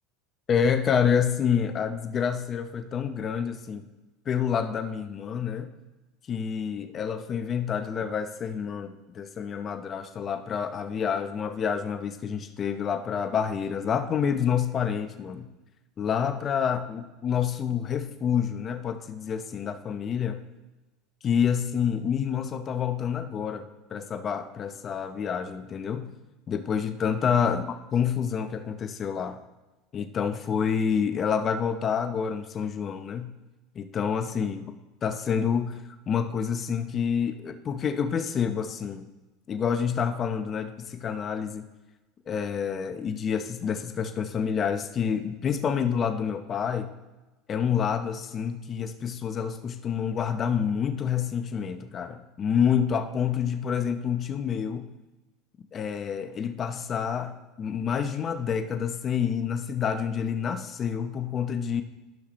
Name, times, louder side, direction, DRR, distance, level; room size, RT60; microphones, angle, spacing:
voice 1, 0.5-3.9 4.3-5.7 6.3-15.5 16.0-20.4 21.2-26.1 26.5-29.4 29.9-33.3 33.7-34.8 35.0-35.8 36.1-39.1 39.5-41.7 42.3-46.9 47.5-54.9 55.7-61.8, left 7 dB, 35° left, 9 dB, 0.8 m, -28 dB
13.5 x 5.8 x 3.2 m, 1.1 s
supercardioid pair, 100°, 0 cm